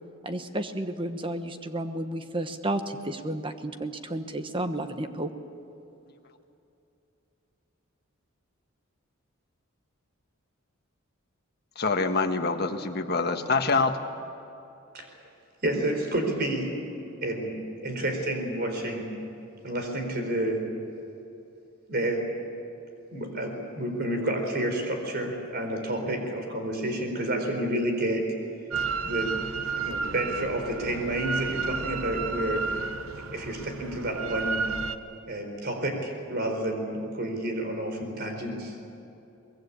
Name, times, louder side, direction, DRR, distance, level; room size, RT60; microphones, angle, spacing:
voice 1, 0.2-5.3, right 1 dB, 25° right, 8 dB, 1.2 m, -32 dB
voice 2, 11.8-13.9, left 4 dB, 50° left, 5 dB, 1.5 m, -25 dB
voice 3, 15.6-16.8 17.2-19.1 19.6-20.6 21.9-22.3 23.1-28.2 29.0-29.3 29.8-32.7 33.3-34.7 35.3-38.7, right 1 dB, 50° right, 4 dB, 4.3 m, -30 dB
Drill, 28.7-35.0, right 4 dB, 85° right, 1.0 m, -32 dB
23.5 x 21.0 x 8.6 m, 2.8 s
head